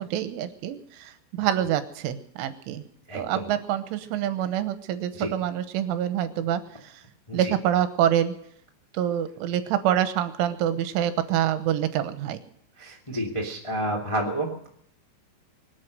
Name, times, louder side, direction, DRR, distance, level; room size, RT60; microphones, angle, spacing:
voice 1, 0.0-2.9 3.1-6.6 7.3-8.4 8.9-12.4, right 11 dB, 85° right, 10 dB, 3.5 m, -26 dB
voice 2, 3.1-3.5 5.1-5.3 7.3-7.5 12.8-14.7, right 1 dB, 40° left, -2 dB, 0.4 m, -30 dB
24.5 x 8.4 x 6.5 m, 0.70 s
omnidirectional pair, 5.6 m